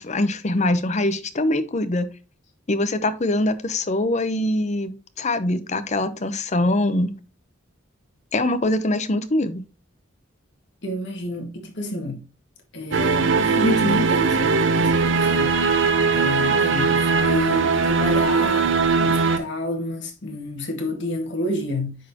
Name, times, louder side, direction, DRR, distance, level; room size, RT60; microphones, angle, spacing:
voice 1, 0.0-2.1 2.7-7.1 8.3-9.6, left 1 dB, 35° left, 0.7 m, -23 dB
voice 2, 10.8-12.2 12.7-15.6 16.1-22.0, left 1 dB, 60° left, 1.9 m, -29 dB
sound 1, 12.9-19.4, right 4 dB, 65° right, 0.7 m, -20 dB
9.2 x 4.2 x 2.8 m
head